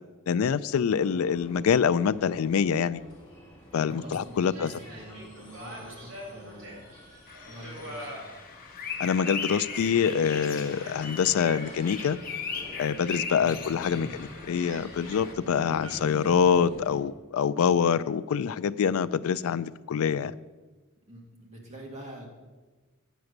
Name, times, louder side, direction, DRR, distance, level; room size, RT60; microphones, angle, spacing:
voice 1, 0.3-3.0 3.7-4.7 9.0-12.2 12.8-14.1 14.5-20.3, left 7 dB, 80° left, 16 dB, 0.4 m, -25 dB
sound 1, 0.9-17.0, equal, 20° left, 3.1 m, -49 dB
sound 2, 3.7-16.0, equal, 85° right, 3.6 m, -47 dB
voice 2, 3.8-7.1 7.4-8.2 13.4-14.1 21.1-22.3, right 1 dB, 35° right, -1 dB, 2.0 m, -46 dB
sound 3, 7.3-15.3, left 5 dB, 45° left, 1.1 m, -38 dB
9.2 x 5.9 x 6.5 m, 1.3 s
head